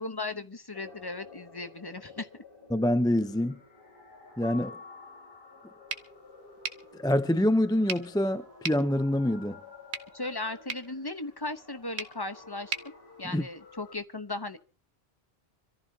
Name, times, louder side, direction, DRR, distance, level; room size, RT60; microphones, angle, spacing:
voice 1, 0.0-2.3 10.1-12.7 13.2-14.6, left 2 dB, 25° left, 0.9 m, -36 dB
sound 1, 0.7-13.9, left 3 dB, 60° left, 3.3 m, -52 dB
voice 2, 2.7-3.6 4.4-4.8 7.0-9.6 13.3-13.4, left 1 dB, 5° left, 0.5 m, -26 dB
Mallet percussion, 4.4-6.2, left 4 dB, 90° right, 1.6 m, -48 dB
sound 2, 5.9-13.9, right 5 dB, 75° right, 1.4 m, -42 dB
26.0 x 14.5 x 2.8 m
omnidirectional pair, 1.1 m